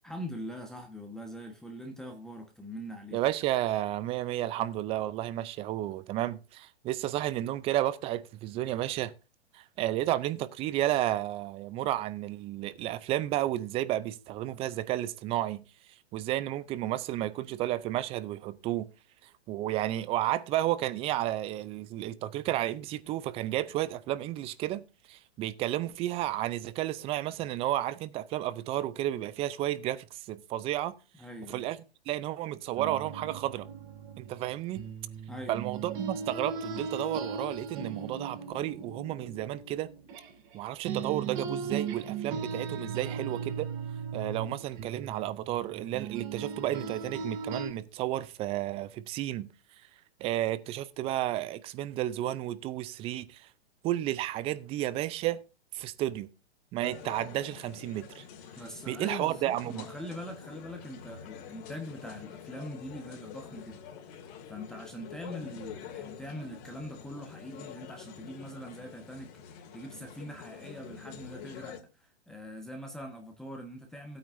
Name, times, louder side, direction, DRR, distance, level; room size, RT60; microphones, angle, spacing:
voice 1, 0.0-3.2 31.2-31.7 35.3-35.6 58.6-64.2 64.5-74.2, equal, ahead, 1.2 m, -43 dB
voice 2, 3.1-9.1 9.5-15.6 16.1-18.9 19.2-30.9 31.5-31.8 32.1-33.7 34.2-34.8 35.5-39.9 40.5-43.7 44.1-49.5 50.2-53.5 53.8-55.4 55.7-56.3 56.7-58.2 58.9-59.9, right 14 dB, 20° right, 0.5 m, -32 dB
sound 1, 32.8-40.6 40.8-47.7, right 6 dB, 45° right, 3.1 m, -38 dB
sound 2, 56.8-71.8, left 7 dB, 40° left, 2.6 m, -46 dB
16.0 x 8.8 x 2.6 m
hypercardioid pair, 135°, 32 cm